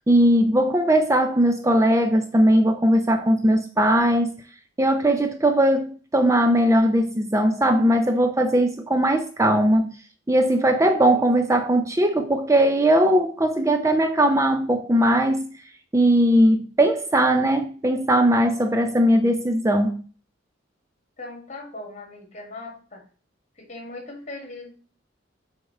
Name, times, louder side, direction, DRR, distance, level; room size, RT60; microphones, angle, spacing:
voice 1, 0.1-4.3 4.8-9.9 10.3-15.5 15.9-20.0, right 1 dB, 15° right, 0.4 m, -19 dB
voice 2, 10.8-11.6 21.2-23.0 23.6-24.7, left 2 dB, 35° left, 1.8 m, -40 dB
6.3 x 3.6 x 5.3 m
head